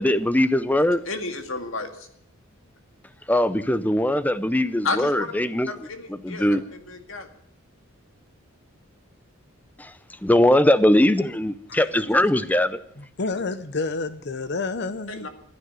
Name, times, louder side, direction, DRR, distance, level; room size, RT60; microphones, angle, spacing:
voice 1, 0.0-1.0 3.3-5.7 6.2-6.6 10.2-12.8, left 1 dB, 10° left, 14 dB, 0.6 m, -20 dB
voice 2, 1.1-2.1 4.8-5.3 5.7-7.3 15.1-15.3, left 3 dB, 70° left, 6 dB, 2.1 m, -32 dB
voice 3, 13.2-15.3, left 3 dB, 50° left, 13 dB, 0.8 m, -29 dB
15.0 x 9.6 x 9.5 m, 0.67 s
head